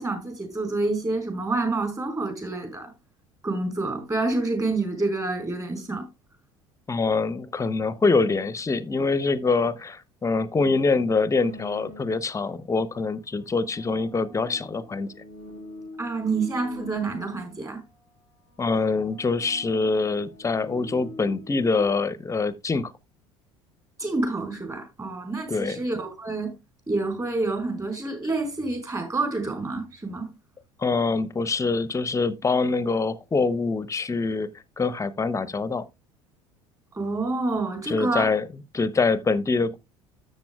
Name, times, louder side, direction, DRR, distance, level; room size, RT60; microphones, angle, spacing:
voice 1, 0.0-2.9 3.4-6.0 16.0-17.8 24.0-26.5 26.9-30.3 36.9-38.3, right 3 dB, 20° right, 4.6 m, -28 dB
voice 2, 6.9-15.1 18.6-22.9 25.5-25.8 30.8-34.5 34.8-35.8 37.9-38.5 38.7-39.8, left 4 dB, 20° left, 0.8 m, -24 dB
sound 1, 11.4-12.5 13.2-17.7 18.5-21.9, left 1 dB, 55° right, 6.5 m, -44 dB
13.0 x 8.0 x 2.3 m
figure-of-eight pair, 65°, 16 cm